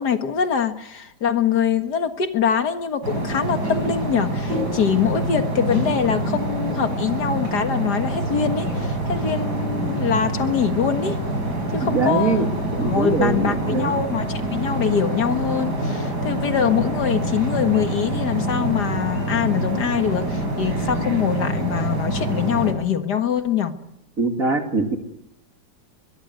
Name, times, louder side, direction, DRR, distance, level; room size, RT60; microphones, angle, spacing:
voice 1, 0.0-11.2 11.7-23.7, left 7 dB, 65° left, 7 dB, 2.2 m, -23 dB
sound 1, 3.0-22.7, right 1 dB, 65° right, 6.5 m, -26 dB
voice 2, 11.8-12.5 12.8-14.0 24.2-25.0, right 3 dB, 50° right, 4 dB, 2.8 m, -22 dB
22.5 x 22.0 x 8.2 m, 0.82 s
omnidirectional pair, 1.9 m